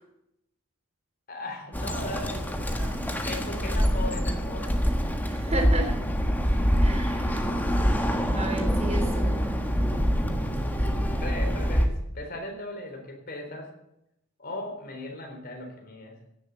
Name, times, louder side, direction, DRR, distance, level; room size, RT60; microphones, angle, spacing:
voice 1, 1.3-4.8 9.7-13.7 14.4-16.2, left 1 dB, 45° left, 2 dB, 3.7 m, -38 dB
Bird, 1.7-11.9, equal, 10° left, 1.4 m, -25 dB
voice 2, 5.3-6.0 6.8-7.4 8.3-9.3, right 2 dB, 30° right, 3 dB, 3.5 m, -33 dB
16.0 x 7.5 x 7.9 m, 0.82 s
head